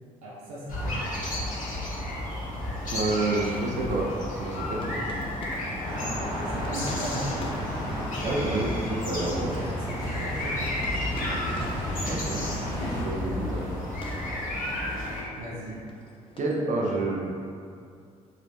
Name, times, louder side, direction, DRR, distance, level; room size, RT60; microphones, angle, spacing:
voice 1, 0.2-1.1 6.4-7.5 9.5-10.7 13.2-13.4 15.4-15.8, equal, 85° right, -6 dB, 0.6 m, -38 dB
sound 1, 0.7-15.2, left 1 dB, 50° left, 1.4 m, -33 dB
voice 2, 2.9-4.1 4.4-5.0 8.2-9.5 12.1-12.4 12.9-13.6 16.4-17.2, right 2 dB, 40° right, -2 dB, 0.8 m, -28 dB
sound 2, 3.4-16.6, left 2 dB, 30° left, 0.6 m, -46 dB
sound 3, 5.8-13.0, equal, 85° left, 1.4 m, -33 dB
4.2 x 3.1 x 2.7 m, 2.4 s
hypercardioid pair, 45°, 18 cm